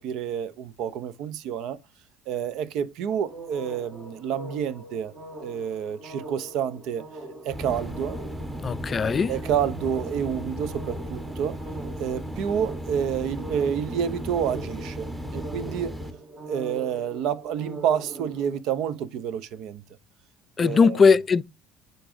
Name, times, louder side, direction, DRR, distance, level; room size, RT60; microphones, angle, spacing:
voice 1, 0.0-1.8 2.3-5.1 5.4-7.1 7.4-8.2 9.3-11.6 12.0-16.0 16.4-19.8 20.6-21.0, right 8 dB, 70° right, 0.5 m, -29 dB
sound 1, 3.1-18.6, right 2 dB, 45° right, 2.0 m, -42 dB
sound 2, 7.5-16.1, equal, 10° right, 1.0 m, -35 dB
voice 2, 8.6-9.3 20.6-21.4, left 5 dB, 35° left, 0.3 m, -19 dB
9.8 x 3.9 x 2.5 m
supercardioid pair, 85°, 0 cm